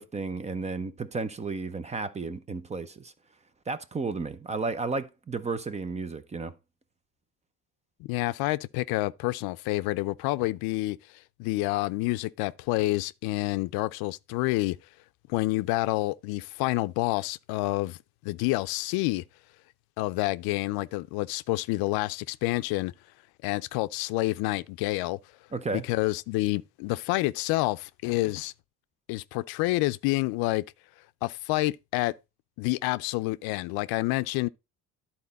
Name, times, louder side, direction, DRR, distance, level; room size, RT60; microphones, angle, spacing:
voice 1, 0.0-3.1 3.7-6.5 25.5-25.8, right 4 dB, 20° right, 0.6 m, -33 dB
voice 2, 8.0-11.0 11.4-14.8 15.3-18.0 18.2-19.2 20.0-22.9 23.4-25.2 25.7-28.5 29.1-30.6 31.2-32.1 32.6-34.5, left 20 dB, 85° left, 0.5 m, -28 dB
11.0 x 4.3 x 4.0 m
cardioid pair, 125°, 36 cm